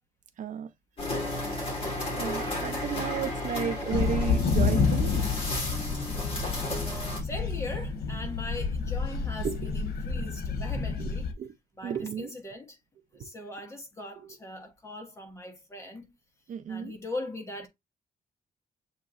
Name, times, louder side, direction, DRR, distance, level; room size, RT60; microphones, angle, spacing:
voice 1, 0.4-0.7 2.1-5.3 9.4-9.6 11.0-11.1 11.4-11.5 11.8-12.3 16.5-16.9, right 7 dB, 55° right, 0.5 m, -33 dB
sound 1, 1.0-7.2, left 1 dB, 35° left, 2.2 m, -33 dB
voice 2, 2.1-2.6 5.6-6.5 7.2-11.3 11.8-12.8 13.1-16.1 16.7-17.7, left 2 dB, 20° left, 1.0 m, -41 dB
sound 2, 3.9-11.3, left 4 dB, 90° left, 0.8 m, -29 dB
7.1 x 2.9 x 2.5 m
wide cardioid pair, 170°, 16 cm